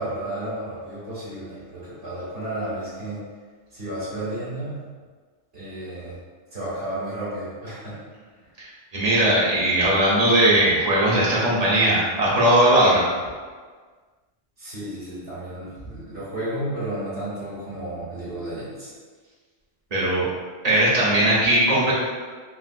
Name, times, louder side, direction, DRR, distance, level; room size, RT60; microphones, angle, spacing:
voice 1, 0.0-3.2 3.7-4.8 5.5-6.2 6.5-8.0 14.6-18.9, right 1 dB, 60° right, -11 dB, 1.2 m, -32 dB
voice 2, 8.9-13.1 19.9-20.3 20.6-21.9, right 1 dB, 40° right, -7 dB, 0.7 m, -19 dB
3.2 x 2.5 x 2.5 m, 1.5 s
omnidirectional pair, 1.2 m